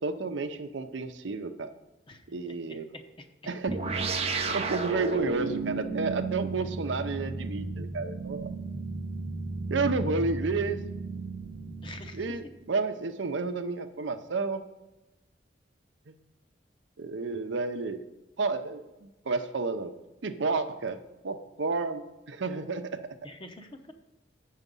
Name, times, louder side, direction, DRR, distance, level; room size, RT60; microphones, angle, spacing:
voice 1, 0.0-1.7 2.3-2.9 3.5-4.0 4.5-8.5 9.7-10.8 12.1-14.6 16.1-16.2 17.0-18.0 18.4-19.9 20.2-23.0, right 4 dB, 80° right, 8 dB, 0.7 m, -31 dB
voice 2, 2.1-3.3 4.3-4.6 11.8-12.2 23.2-23.9, left 2 dB, 25° left, 6 dB, 0.8 m, -47 dB
sound 1, 3.7-12.5, right 3 dB, 35° right, 0.7 m, -33 dB
8.2 x 6.4 x 5.3 m, 1.1 s
head